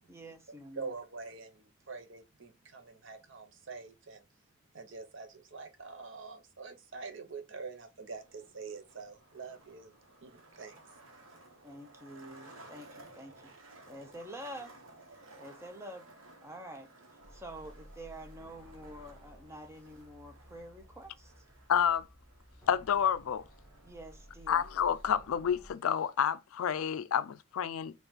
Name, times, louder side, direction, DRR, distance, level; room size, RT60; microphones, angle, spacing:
voice 1, 0.1-0.9 11.6-13.5 13.9-14.8 15.4-16.1 16.4-16.9 17.3-21.4 23.8-24.7, right 1 dB, 10° right, 0.6 m, -47 dB
voice 2, 0.8-4.2 4.7-9.9 10.2-10.8, right 4 dB, 60° right, 0.7 m, -45 dB
Skateboard, 8.0-25.1, right 2 dB, 75° right, 1.0 m, -57 dB
sound 1, 17.2-25.7, equal, 5° left, 1.1 m, -55 dB
voice 3, 21.7-22.0 22.7-23.4 24.5-27.9, left 8 dB, 80° left, 0.4 m, -29 dB
4.3 x 2.4 x 3.8 m
head